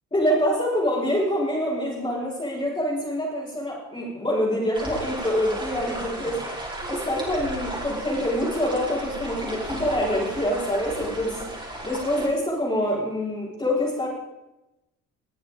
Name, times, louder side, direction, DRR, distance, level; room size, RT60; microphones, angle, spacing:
voice 1, 0.1-6.5 6.9-14.1, equal, 20° left, -8 dB, 6.2 m, -26 dB
sound 1, 4.7-12.3, right 1 dB, 15° right, 5.8 m, -34 dB
20.0 x 9.8 x 5.3 m, 0.95 s
cardioid pair, 90°, 30 cm